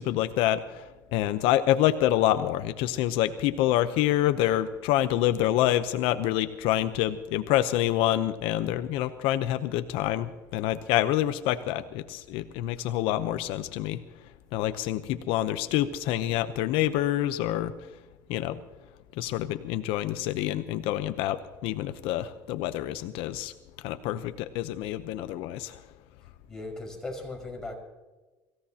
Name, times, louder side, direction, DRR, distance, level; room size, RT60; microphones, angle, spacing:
voice 1, 0.0-14.0 14.5-17.7 18.3-18.6 19.2-23.5 23.8-25.8, left 13 dB, 75° left, 11 dB, 0.8 m, -27 dB
voice 2, 26.5-27.8, left 2 dB, 5° left, -1 dB, 5.3 m, -37 dB
24.5 x 16.0 x 2.9 m, 1.2 s
cardioid pair, 115°, 9 cm